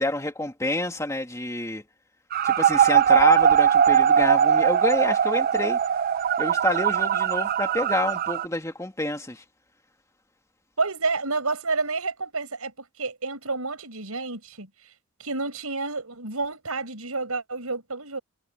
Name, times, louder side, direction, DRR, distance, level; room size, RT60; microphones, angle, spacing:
voice 1, 0.0-1.8 2.4-5.8 6.4-9.4, left 2 dB, 15° left, 2.2 m, -28 dB
sound 1, 2.3-8.5, right 8 dB, 40° right, 0.4 m, -20 dB
voice 2, 10.8-12.7 13.0-14.7 15.2-18.2, right 3 dB, 80° right, 5.4 m, -29 dB
head